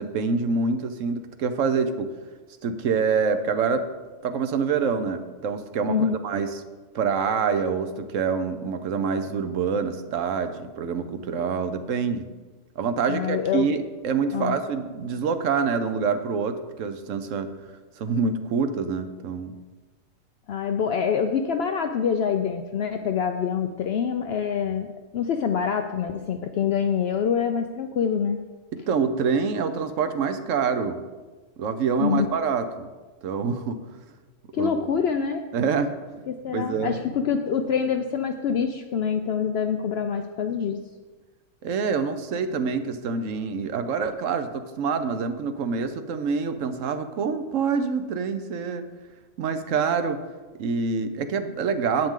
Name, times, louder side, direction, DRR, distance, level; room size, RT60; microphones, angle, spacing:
voice 1, 0.0-2.1 2.6-3.9 4.2-6.0 6.2-6.5 6.9-12.3 12.8-17.5 18.0-19.5 28.7-31.0 31.6-32.9 33.2-33.8 34.6-34.7 35.5-35.9 36.5-37.0 41.6-48.8 49.4-50.2 50.6-52.1, right 5 dB, 80° right, 9 dB, 1.1 m, -26 dB
voice 2, 13.1-13.7 14.3-14.6 20.5-24.9 25.1-28.4 32.0-32.4 34.5-35.5 36.3-40.8, left 7 dB, 65° left, 6 dB, 0.7 m, -25 dB
10.5 x 8.7 x 3.7 m, 1.3 s
omnidirectional pair, 1.3 m